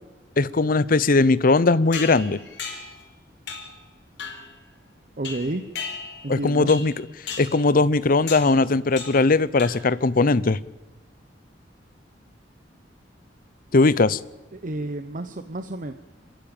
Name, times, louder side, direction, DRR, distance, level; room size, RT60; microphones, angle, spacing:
voice 1, 0.4-2.4 6.3-6.9 7.4-10.6 13.7-14.2, left 3 dB, 50° left, 18 dB, 0.7 m, -19 dB
sound 1, 1.9-3.0 3.5-3.8 4.2-4.5 5.2-6.3 6.7-7.0 7.3-7.6 8.3-8.6 9.0-9.3 9.6-10.0, left 5 dB, 75° left, 4.4 m, -35 dB
voice 2, 5.2-5.7 6.2-6.7 14.5-15.9, right 2 dB, 50° right, 9 dB, 0.9 m, -30 dB
26.5 x 14.0 x 8.9 m, 1.2 s
head